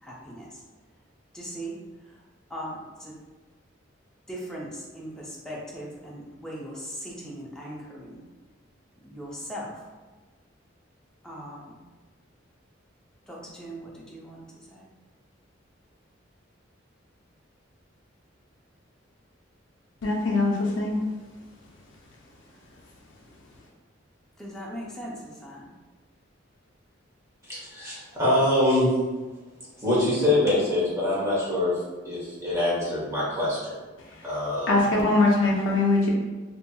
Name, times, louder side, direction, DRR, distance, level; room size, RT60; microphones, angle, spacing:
voice 1, 0.0-0.6 1.3-2.2 2.5-3.2 4.3-8.2 9.0-9.9 11.2-11.8 13.3-14.8 24.4-25.7, equal, 5° left, -5 dB, 0.4 m, -39 dB
voice 2, 20.0-21.0 34.7-36.1, left 2 dB, 80° left, -2 dB, 0.4 m, -22 dB
voice 3, 27.4-28.9 29.8-33.8 34.2-34.9, left 1 dB, 15° right, -8 dB, 0.9 m, -24 dB
2.7 x 2.6 x 2.2 m, 1.3 s
head